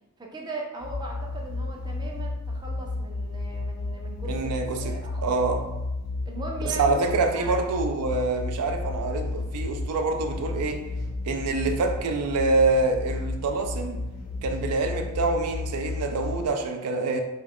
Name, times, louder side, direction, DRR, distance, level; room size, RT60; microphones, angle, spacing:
voice 1, 0.2-5.4 6.3-7.6, right 2 dB, 20° right, 0.3 m, -39 dB
sound 1, 0.8-16.5, left 2 dB, 90° left, 0.8 m, -33 dB
voice 2, 4.3-5.0 5.2-5.7 6.6-10.8 11.2-14.0 14.4-17.2, right 3 dB, 85° right, 0.4 m, -26 dB
2.4 x 2.3 x 3.4 m
head